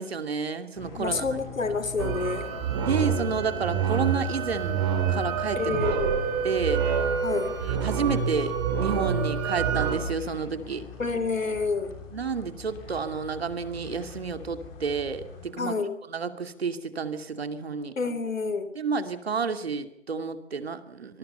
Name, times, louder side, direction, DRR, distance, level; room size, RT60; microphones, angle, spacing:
voice 1, 0.0-1.2 2.8-4.8 5.1-5.8 6.4-6.8 7.6-10.8 12.1-15.7 16.1-17.9 18.8-21.2, right 5 dB, 50° right, 8 dB, 2.6 m, -30 dB
sound 1, 0.7-15.5, left 4 dB, 10° left, 3.2 m, -44 dB
voice 2, 1.0-2.5 5.5-6.2 7.2-7.6 11.0-11.9 15.6-16.0 18.0-18.7, left 4 dB, 90° left, 12 dB, 3.9 m, -28 dB
sound 2, 2.0-10.0, right 6 dB, 20° right, 4.0 m, -27 dB
25.5 x 22.0 x 5.6 m, 0.83 s
hypercardioid pair, 170°, 38 cm